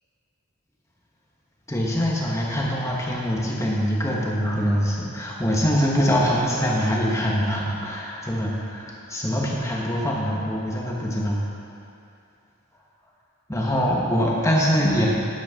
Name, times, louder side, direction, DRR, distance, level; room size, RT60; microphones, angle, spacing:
voice 1, 1.7-11.4 13.5-15.1, equal, 15° left, -3 dB, 1.2 m, -23 dB
10.5 x 9.0 x 3.7 m, 2.6 s
head